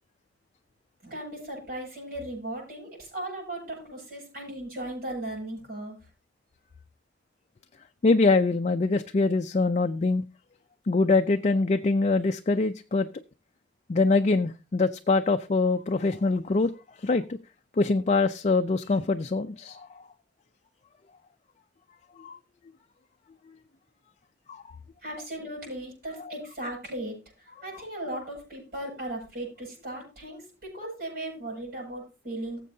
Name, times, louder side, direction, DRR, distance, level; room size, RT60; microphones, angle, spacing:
voice 1, 1.0-6.1 25.0-32.6, right 1 dB, 55° right, -4 dB, 7.5 m, -37 dB
voice 2, 8.0-10.2 10.9-13.1 13.9-16.7 17.0-17.4 17.8-20.0 22.2-22.4 24.5-24.8, left 3 dB, 40° left, 7 dB, 0.4 m, -24 dB
19.0 x 7.5 x 2.7 m, 0.31 s
head